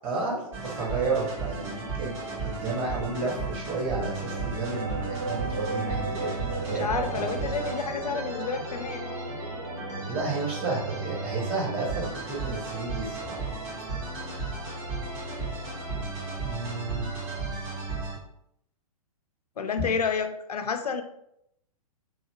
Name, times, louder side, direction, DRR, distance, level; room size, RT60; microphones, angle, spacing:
voice 1, 0.0-7.3 10.1-13.4 16.4-17.1, right 3 dB, 25° right, -4 dB, 1.2 m, -32 dB
sound 1, 0.5-18.2, right 3 dB, 50° right, 1.5 m, -35 dB
sound 2, 4.2-16.1, right 2 dB, 70° right, 0.7 m, -38 dB
voice 2, 6.7-9.1 19.6-21.0, left 5 dB, 80° left, 7 dB, 0.4 m, -30 dB
2.8 x 2.7 x 2.7 m, 0.77 s
figure-of-eight pair, 115°, 19 cm